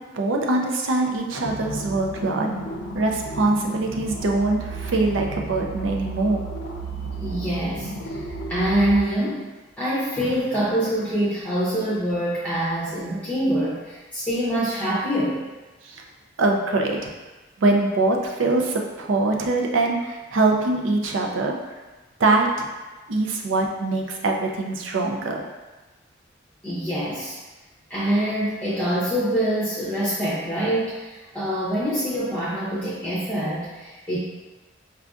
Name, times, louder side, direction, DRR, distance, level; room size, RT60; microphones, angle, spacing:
voice 1, 0.1-2.5 2.9-6.4 15.8-16.0 16.4-17.1 17.6-21.5 22.2-22.7 23.1-25.4, right 2 dB, 90° right, 1 dB, 0.5 m, -23 dB
sound 1, 1.4-9.0, right 3 dB, 70° left, 0.5 m, -33 dB
voice 2, 7.2-8.2 8.5-9.5 9.8-15.4 26.6-27.4 27.9-34.2, right 1 dB, 5° left, -10 dB, 0.6 m, -25 dB
4.6 x 2.5 x 2.4 m, 1.2 s
head